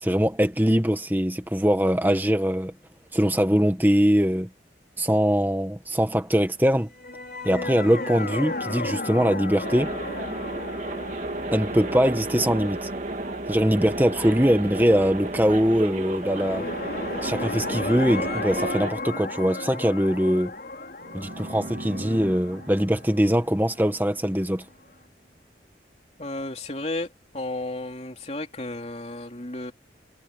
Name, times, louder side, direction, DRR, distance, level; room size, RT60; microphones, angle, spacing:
voice 1, 0.0-2.7 3.1-4.5 5.0-6.9 7.4-9.9 11.5-12.9 13.5-16.7 17.2-20.5 21.1-24.6, equal, 10° right, 1.5 m, -22 dB
sound 1, 6.9-14.2 16.0-23.8, left 2 dB, 55° left, 4.7 m, -34 dB
sound 2, 9.6-18.9, right 2 dB, 45° right, 2.6 m, -32 dB
sound 3, 21.0-24.7, right 1 dB, 60° right, 3.4 m, -41 dB
voice 2, 26.2-27.1 27.3-29.7, left 2 dB, 35° left, 3.5 m, -33 dB
head